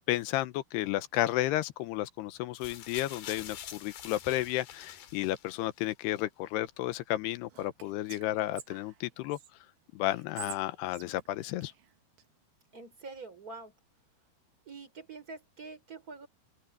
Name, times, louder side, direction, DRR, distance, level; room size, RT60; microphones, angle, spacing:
voice 1, 0.1-9.4 9.9-11.7, left 15 dB, 80° left, 2.9 m, -32 dB
sound 1, 2.5-5.8 6.7-6.8, left 10 dB, 65° left, 3.5 m, -46 dB
Whispering, 7.5-9.5 10.1-12.3, right 11 dB, 70° right, 3.5 m, -49 dB
voice 2, 12.7-13.7 14.7-16.3, right 4 dB, 20° right, 3.9 m, -45 dB
open air
omnidirectional pair, 4.8 m